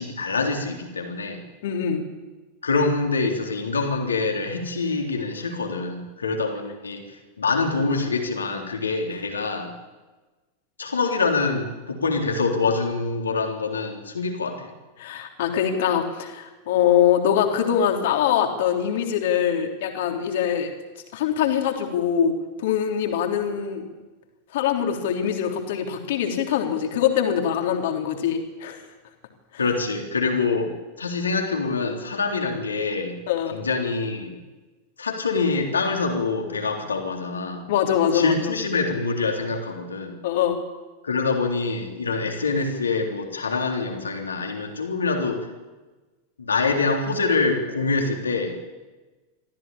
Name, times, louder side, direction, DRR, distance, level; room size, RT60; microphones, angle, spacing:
voice 1, 0.0-1.4 2.6-7.0 7.4-9.7 10.8-14.7 29.6-33.2 33.5-34.4 35.0-37.7 38.1-40.2 41.0-45.4 46.4-48.6, left 4 dB, 75° left, 3 dB, 3.6 m, -25 dB
voice 2, 1.6-2.0 15.0-20.7 21.1-23.9 24.5-28.8 33.3-33.6 37.7-38.5 40.2-40.6, left 9 dB, 55° left, 4 dB, 3.3 m, -23 dB
24.0 x 15.0 x 8.8 m, 1.2 s
figure-of-eight pair, 90°, 0 cm